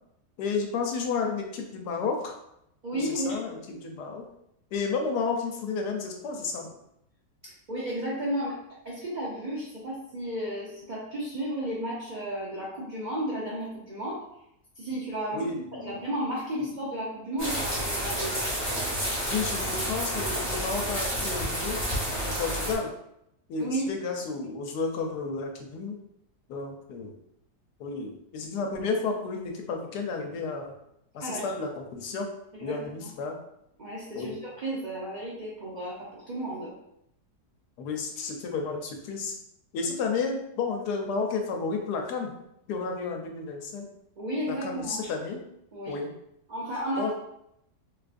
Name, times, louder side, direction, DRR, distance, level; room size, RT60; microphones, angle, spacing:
voice 1, 0.4-2.3 2.9-4.2 4.7-6.7 15.3-16.0 16.5-16.7 19.3-21.8 22.4-22.9 23.5-26.0 26.5-27.1 27.8-30.7 31.1-32.3 32.6-33.4 34.1-34.4 37.8-39.3 39.7-42.3 42.7-43.9 44.5-45.4 45.9-46.1 47.0-47.1, left 4 dB, 80° left, 3 dB, 1.1 m, -32 dB
voice 2, 2.8-3.4 7.4-8.6 8.8-14.2 14.8-15.5 15.8-18.3 23.6-23.9 31.2-31.4 32.6-32.8 33.8-36.7 44.2-45.1 45.7-46.0 46.5-47.1, right 1 dB, 80° right, -6 dB, 0.4 m, -33 dB
sound 1, 17.4-22.7, equal, 20° right, 0.8 m, -30 dB
3.6 x 2.4 x 2.4 m, 0.78 s
omnidirectional pair, 1.7 m